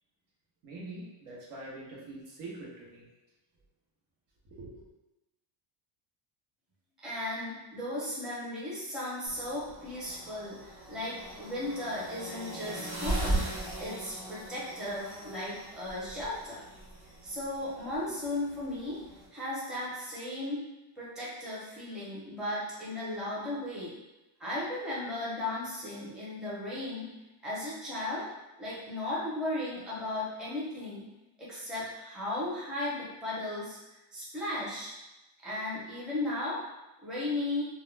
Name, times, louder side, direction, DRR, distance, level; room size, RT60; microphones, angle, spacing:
voice 1, 0.6-3.1 4.5-4.8, right 2 dB, 80° right, -4 dB, 1.0 m, -44 dB
voice 2, 7.0-13.5 13.8-16.6 17.2-19.0 19.3-20.6 21.0-23.9 24.4-27.1 27.4-28.3 28.6-31.1 31.4-33.8 34.1-34.9 35.4-36.6 37.0-37.7, left 1 dB, ahead, -9 dB, 0.5 m, -36 dB
sound 1, 9.3-19.3, right 2 dB, 35° right, 1.1 m, -39 dB
2.3 x 2.1 x 3.1 m, 1.0 s
cardioid pair, 155°, 47 cm